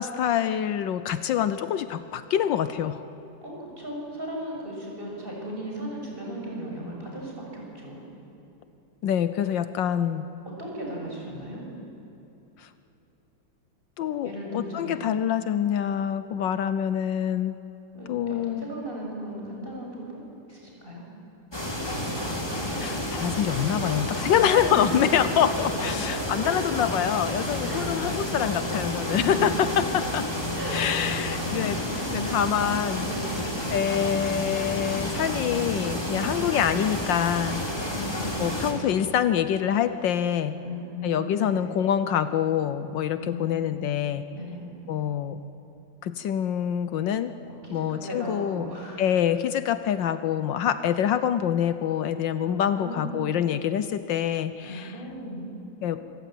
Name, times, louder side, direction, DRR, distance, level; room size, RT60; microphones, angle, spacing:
voice 1, 0.0-3.0 9.0-10.3 12.6-12.7 14.0-17.6 18.1-18.7 22.8-30.3 30.7-31.8 32.1-33.1 33.7-37.7 38.4-40.6 41.0-44.3 44.9-45.4 46.0-47.3 47.7-48.7 49.0-54.9 55.8-56.0, left 9 dB, 75° left, 12 dB, 1.4 m, -26 dB
voice 2, 3.4-8.0 10.5-11.7 14.2-15.0 17.9-21.0 24.3-25.1 26.1-26.6 27.6-27.9 29.1-29.5 30.5-32.4 33.0-33.4 36.1-36.6 37.8-38.8 40.6-41.7 43.2-43.7 44.3-44.7 47.5-49.0 52.4-53.2 54.6-55.5, equal, 25° right, -2 dB, 7.0 m, -37 dB
sound 1, 21.5-38.7, left 1 dB, 10° left, 3.3 m, -30 dB
25.5 x 24.0 x 9.2 m, 2.9 s
omnidirectional pair, 2.1 m